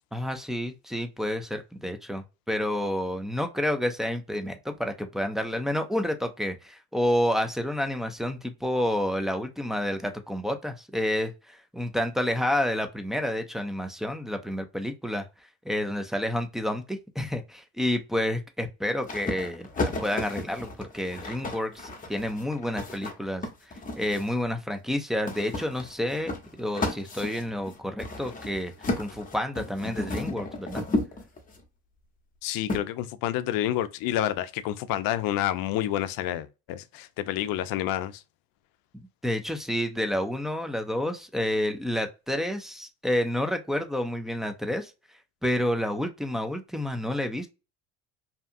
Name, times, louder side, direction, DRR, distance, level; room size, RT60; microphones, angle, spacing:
voice 1, 0.1-15.3 15.6-23.5 24.0-30.8 38.9-44.9 45.4-47.5, left 1 dB, ahead, 0.4 m, -29 dB
sound 1, 19.1-24.4 25.3-31.6 32.7-32.8, left 2 dB, 20° left, 0.8 m, -33 dB
voice 2, 32.4-38.2, left 12 dB, 60° left, 0.5 m, -29 dB
2.8 x 2.3 x 2.5 m
supercardioid pair, 85°, 39 cm